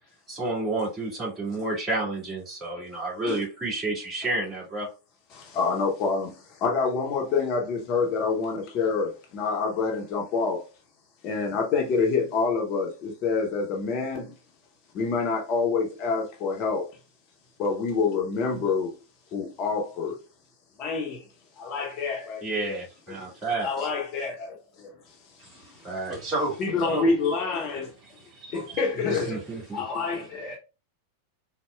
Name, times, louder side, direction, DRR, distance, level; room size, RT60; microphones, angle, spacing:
voice 1, 0.3-4.9 22.4-23.9 25.8-26.2 29.1-29.8, right 2 dB, 15° right, 1.8 m, -30 dB
voice 2, 5.3-10.6 11.2-14.3 14.9-16.9 17.6-19.0 19.3-20.2 20.8-21.2 21.6-22.8 23.2-23.3 23.6-24.9 26.6-27.9 28.5-29.4 29.7-30.6, left 4 dB, 35° left, 0.7 m, -27 dB
voice 3, 25.4-27.1 28.4-28.8 29.1-29.3 29.7-30.6, right 2 dB, 35° right, 1.5 m, -34 dB
4.0 x 2.1 x 2.2 m
figure-of-eight pair, 90°, 0 cm